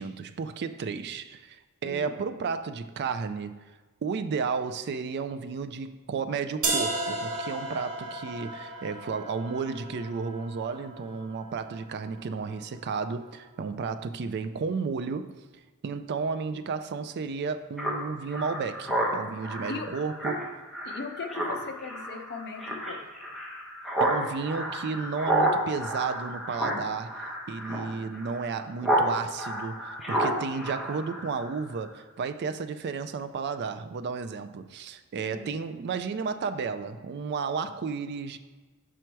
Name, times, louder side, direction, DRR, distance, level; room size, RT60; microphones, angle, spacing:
voice 1, 0.0-3.6 4.0-15.4 15.8-20.7 24.0-38.4, right 5 dB, 50° right, 0.3 m, -33 dB
voice 2, 1.8-2.1 16.5-16.6 19.7-19.9 20.8-23.3 35.2-35.5, left 4 dB, 50° left, 0.6 m, -39 dB
sound 1, 6.6-12.6, right 2 dB, 90° right, 1.2 m, -35 dB
Speech synthesizer, 17.8-29.1 29.4-31.6, right 1 dB, ahead, 1.0 m, -30 dB
6.2 x 4.6 x 4.5 m
head